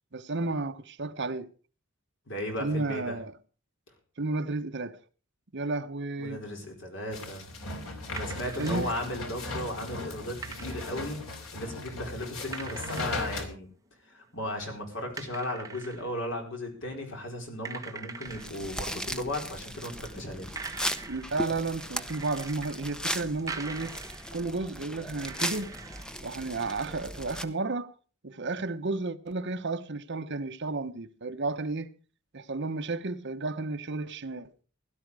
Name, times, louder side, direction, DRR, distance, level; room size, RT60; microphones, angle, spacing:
voice 1, 0.1-1.5 2.6-3.3 4.2-5.0 5.5-6.4 8.6-9.0 21.0-24.0 24.3-25.7 26.2-27.9 28.2-31.9 32.3-34.5, right 3 dB, 55° right, 1.0 m, -32 dB
voice 2, 2.3-3.2 6.2-7.5 8.1-11.2 11.5-13.7 14.1-20.5, left 1 dB, 60° left, 4.5 m, -36 dB
sound 1, 7.1-13.5, left 2 dB, 85° left, 3.1 m, -37 dB
sound 2, 8.0-9.0 10.4-11.1 11.7-11.8 12.5-13.5 13.9-14.0 14.3-14.7 15.2-16.1 16.6-16.9 17.2-17.3 17.6-18.5 19.1-20.1 20.4-21.4 22.0-22.8 23.1-24.4 25.0-26.2, right 4 dB, 15° right, 1.4 m, -42 dB
sound 3, 18.2-27.4, equal, 5° left, 0.9 m, -37 dB
17.0 x 12.0 x 4.8 m
head